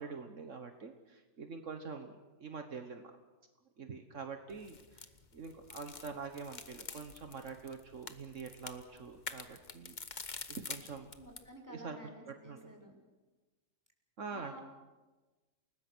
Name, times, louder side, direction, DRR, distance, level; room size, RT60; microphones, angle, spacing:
voice 1, 0.0-3.1 3.8-11.1 11.7-12.0 12.5-12.7 14.2-14.6, right 5 dB, 65° right, 6 dB, 1.7 m, -45 dB
sound 1, 4.5-11.5, left 4 dB, 35° left, 1.2 m, -48 dB
voice 2, 11.2-13.0 14.3-14.6, right 1 dB, 15° right, -1 dB, 4.4 m, -51 dB
29.5 x 19.5 x 6.2 m, 1.2 s
omnidirectional pair, 1.4 m